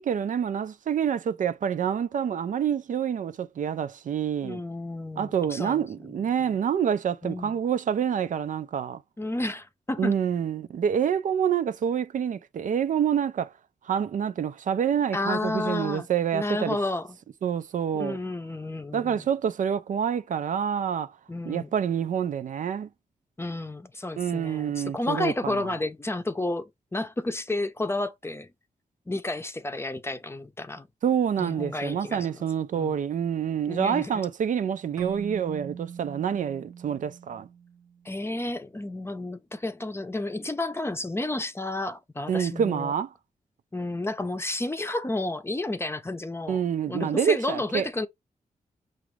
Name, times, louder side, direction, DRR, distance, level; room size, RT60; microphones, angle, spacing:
voice 1, 0.0-4.6 5.2-9.0 10.0-13.5 13.8-16.8 17.4-18.2 18.9-21.1 21.4-22.9 24.2-25.6 31.0-37.5 42.3-43.1 46.5-47.9, right 8 dB, 70° right, 0.4 m, -27 dB
voice 2, 4.4-5.9 7.2-7.5 9.2-10.1 15.1-16.1 16.3-17.1 18.0-19.3 21.3-21.7 23.4-28.5 29.1-30.9 31.4-32.4 32.7-33.0 33.7-34.2 38.0-42.9 43.7-48.1, left 2 dB, 20° left, 0.6 m, -31 dB
Keyboard (musical), 35.0-38.2, right 7 dB, 30° right, 0.8 m, -42 dB
6.0 x 2.5 x 3.1 m
cardioid pair, 80°, 14 cm